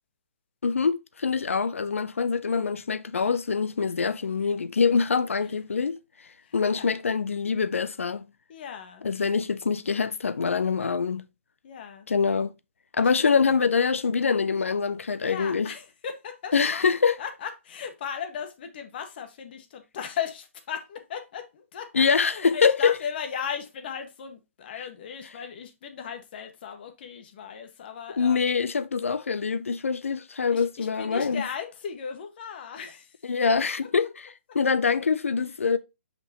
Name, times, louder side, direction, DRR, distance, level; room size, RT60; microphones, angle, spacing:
voice 1, 0.6-6.0 6.5-8.3 9.0-11.2 12.1-12.5 12.9-15.7 16.5-17.2 21.9-22.9 28.2-31.4 33.3-34.3 34.5-35.8, left 5 dB, 70° left, 0.6 m, -24 dB
voice 2, 6.4-7.0 8.5-9.0 11.6-12.1 13.0-13.5 15.2-16.8 17.2-28.5 30.5-33.2 33.6-33.9, left 7 dB, 45° left, 1.5 m, -37 dB
6.1 x 5.4 x 2.9 m
figure-of-eight pair, 130°, 7 cm